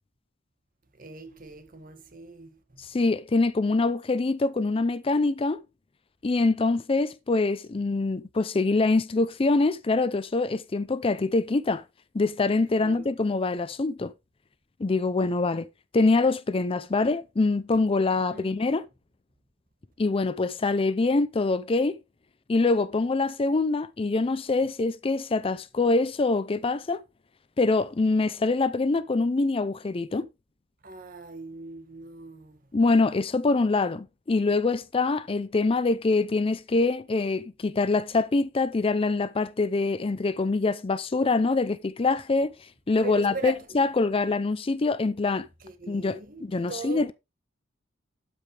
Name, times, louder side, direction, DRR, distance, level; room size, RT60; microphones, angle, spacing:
voice 1, 0.9-2.8 12.8-13.1 18.3-18.6 30.8-32.6 43.0-43.8 45.6-47.1, right 3 dB, 45° right, 1.7 m, -40 dB
voice 2, 2.8-5.6 6.2-11.8 12.1-14.1 14.8-15.7 15.9-18.8 20.0-22.0 22.5-27.0 27.6-30.3 32.7-42.5 42.9-45.5 45.9-47.1, left 3 dB, 30° left, 0.4 m, -24 dB
12.5 x 5.4 x 3.3 m
head